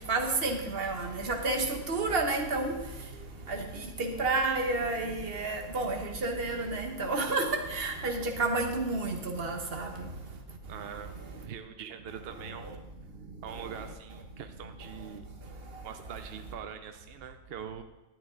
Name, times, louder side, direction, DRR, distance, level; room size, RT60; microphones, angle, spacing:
voice 1, 0.1-2.8 3.5-3.6 4.0-9.9, right 3 dB, 40° right, 3 dB, 1.3 m, -30 dB
voice 2, 10.7-12.8 13.4-15.2 15.8-17.8, right 8 dB, 65° right, 8 dB, 0.6 m, -43 dB
12.0 x 10.0 x 3.8 m, 1.0 s
omnidirectional pair, 1.7 m